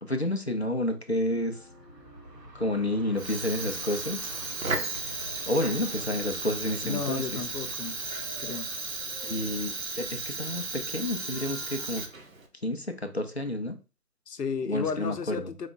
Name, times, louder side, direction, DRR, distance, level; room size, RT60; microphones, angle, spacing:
voice 1, 0.0-1.7 2.5-4.3 5.5-7.4 9.2-12.0 12.6-13.8 14.7-15.5, left 1 dB, 40° left, 0.5 m, -30 dB
sound 1, 1.3-12.0, left 1 dB, 5° left, 1.2 m, -53 dB
Train, 1.4-10.6, right 1 dB, 80° right, 1.5 m, -49 dB
Fire, 3.1-12.5, right 3 dB, 55° right, 1.0 m, -35 dB
voice 2, 6.8-8.0 8.4-8.7 14.3-15.7, left 5 dB, 70° left, 0.8 m, -33 dB
4.9 x 2.3 x 3.9 m
figure-of-eight pair, 165°, 50 cm